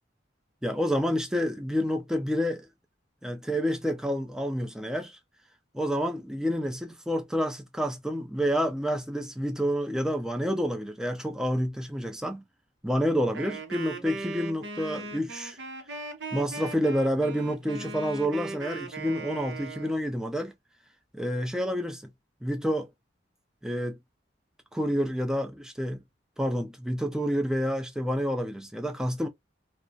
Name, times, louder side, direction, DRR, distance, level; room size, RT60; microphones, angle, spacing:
voice 1, 0.6-2.7 3.2-5.2 5.7-12.4 12.8-15.6 16.3-20.5 21.1-22.1 22.4-22.9 23.6-24.0 24.7-26.0 26.4-29.3, equal, 5° right, 0.4 m, -29 dB
Wind instrument woodwind instrument, 13.3-20.0, right 3 dB, 75° right, 0.7 m, -39 dB
2.3 x 2.1 x 2.5 m
head